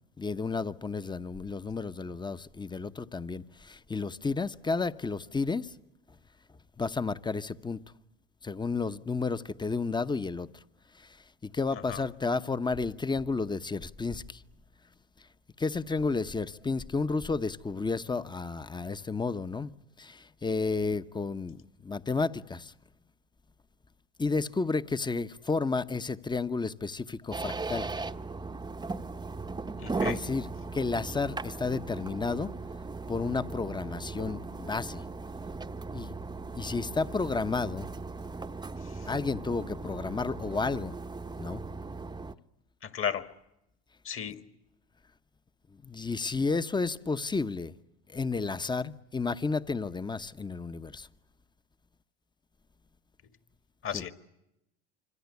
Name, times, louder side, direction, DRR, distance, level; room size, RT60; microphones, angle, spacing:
voice 1, 0.2-5.7 6.8-7.8 8.4-10.5 10.9-11.2 11.4-14.4 15.6-19.7 20.0-22.7 24.2-27.9 30.0-32.5 33.1-35.0 35.9-36.1 36.5-37.9 39.1-40.9 41.4-41.6 45.7-47.7 48.1-51.1 53.9-54.1, left 4 dB, 15° left, 1.0 m, -32 dB
sound 1, 27.3-42.4, right 3 dB, 15° right, 1.0 m, -38 dB
voice 2, 29.8-30.2 42.8-43.3 44.1-44.5 53.8-54.1, left 8 dB, 40° left, 2.0 m, -34 dB
26.0 x 25.5 x 8.4 m
supercardioid pair, 90°, 33 cm